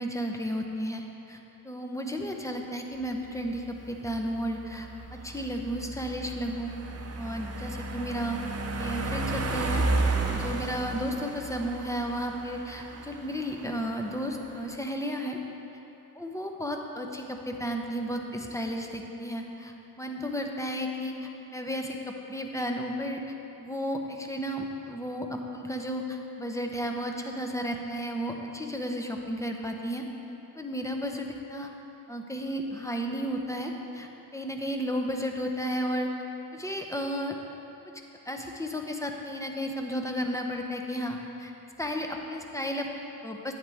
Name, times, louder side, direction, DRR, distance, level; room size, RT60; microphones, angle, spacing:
voice 1, 0.0-6.7 7.2-8.4 8.8-9.8 10.3-15.4 16.1-23.3 23.6-30.0 30.5-31.7 32.1-36.1 36.5-37.3 38.3-41.5 41.8-43.5, equal, 10° left, 2 dB, 0.9 m, -33 dB
sound 1, 3.0-14.7, right 2 dB, 40° right, 0.8 m, -33 dB
11.0 x 9.0 x 3.5 m, 3.0 s
cardioid pair, 85°, 37 cm